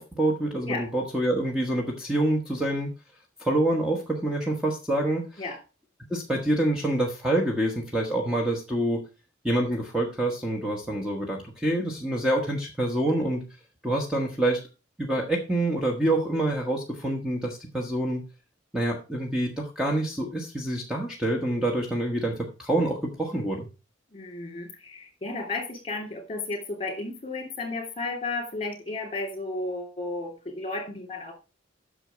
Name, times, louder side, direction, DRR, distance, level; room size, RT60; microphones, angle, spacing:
voice 1, 0.0-2.9 3.4-5.4 6.1-9.0 9.4-13.4 13.8-14.6 15.0-18.2 18.7-23.7, right 1 dB, 5° right, 0 dB, 1.2 m, -26 dB
voice 2, 24.1-31.3, left 3 dB, 30° left, 3 dB, 2.9 m, -33 dB
8.9 x 6.4 x 4.9 m, 0.31 s
head